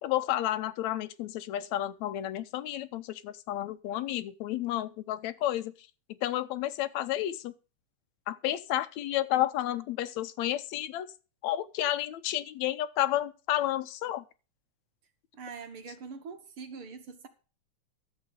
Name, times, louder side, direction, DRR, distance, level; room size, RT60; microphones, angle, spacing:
voice 1, 0.0-5.7 6.1-7.5 8.3-11.1 11.4-14.2, left 13 dB, 75° left, 2.0 m, -31 dB
voice 2, 15.3-17.3, right 5 dB, 50° right, 2.0 m, -43 dB
13.0 x 7.4 x 5.1 m
omnidirectional pair, 3.5 m